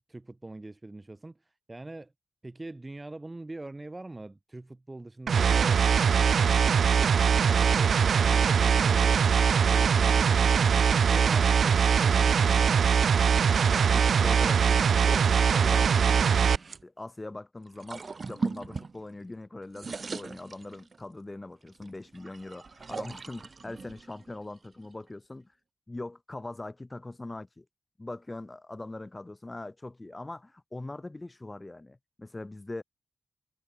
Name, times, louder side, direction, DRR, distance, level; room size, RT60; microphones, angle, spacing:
voice 1, 0.1-2.1 2.4-12.9, right 2 dB, 15° right, 3.8 m, -43 dB
sound 1, 5.3-16.6, right 7 dB, 60° right, 1.4 m, -22 dB
voice 2, 13.7-16.4 16.8-25.5 25.9-27.6 28.0-32.8, left 2 dB, 15° left, 3.1 m, -41 dB
sound 2, 17.7-19.4 19.6-21.1 21.7-25.1, right 4 dB, 35° right, 6.5 m, -41 dB
wide cardioid pair, 145°, 0 cm